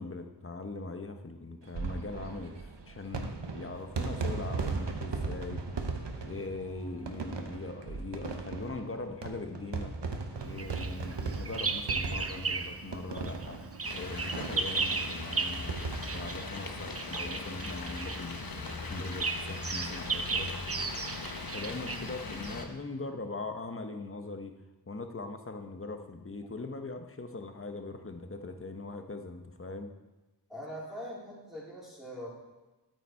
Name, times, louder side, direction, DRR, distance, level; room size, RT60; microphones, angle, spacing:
voice 1, 0.0-5.7 6.2-9.9 10.4-15.8 16.1-20.5 21.5-24.5 24.9-29.9, left 3 dB, 30° left, 6 dB, 0.9 m, -41 dB
sound 1, 1.6-17.6 18.0-18.1 18.2-18.3 19.6-19.9, right 4 dB, 90° right, 1.0 m, -38 dB
Bird vocalization bird call bird song, 10.6-12.8 13.1-22.7, right 4 dB, 35° right, 0.6 m, -36 dB
sound 2, 13.8-22.7, left 3 dB, 55° left, 1.0 m, -40 dB
voice 2, 30.5-32.3, equal, ahead, -6 dB, 2.9 m, -42 dB
9.0 x 8.7 x 4.4 m, 1.1 s
wide cardioid pair, 45°, 41 cm